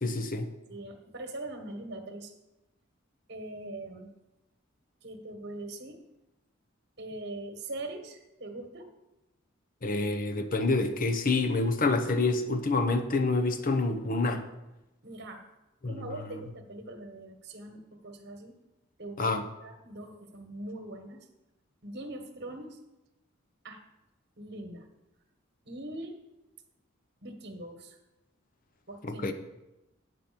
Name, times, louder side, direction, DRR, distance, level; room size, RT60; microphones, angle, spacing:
voice 1, 0.0-0.5 9.8-14.4 15.8-16.4 19.2-19.5 29.0-29.3, left 3 dB, 45° left, 8 dB, 0.8 m, -28 dB
voice 2, 0.7-2.3 3.3-4.1 5.0-6.0 7.0-8.9 15.0-15.4 15.8-18.5 19.0-21.3 21.8-22.8 23.6-23.8 24.4-24.8 25.6-26.2 27.2-28.0 28.9-29.3, right 1 dB, 55° right, 6 dB, 1.5 m, -42 dB
9.2 x 5.9 x 6.9 m, 0.98 s
head